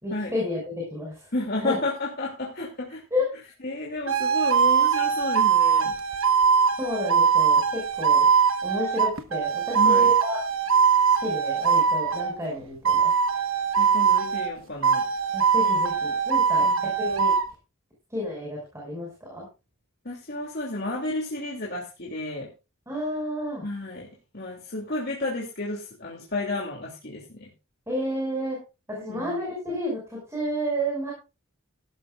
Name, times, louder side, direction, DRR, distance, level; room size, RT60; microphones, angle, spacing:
voice 1, 0.0-1.3 1.6-1.8 3.1-3.3 6.8-8.3 8.6-10.4 11.2-13.1 15.3-17.3 18.1-19.5 22.9-23.6 27.9-28.6 28.9-31.1, equal, 10° right, -3 dB, 6.0 m, -31 dB
voice 2, 1.3-3.0 3.6-5.9 9.7-10.1 13.8-15.0 16.6-16.8 20.0-22.5 23.6-24.1 24.3-27.5 29.1-29.4, left 2 dB, 45° left, -2 dB, 2.8 m, -31 dB
sound 1, 4.1-12.4 12.8-14.5 14.8-17.5, right 6 dB, 60° right, 1.3 m, -21 dB
16.0 x 13.5 x 2.5 m, 0.29 s
head